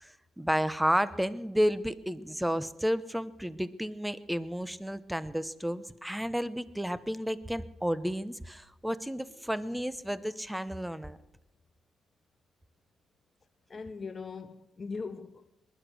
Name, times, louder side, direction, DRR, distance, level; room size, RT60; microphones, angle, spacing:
voice 1, 0.0-11.2, equal, 5° right, 0.8 m, -32 dB
voice 2, 13.7-15.5, left 4 dB, 35° left, 0.7 m, -40 dB
20.0 x 11.5 x 6.2 m
cardioid pair, 90°, 0 cm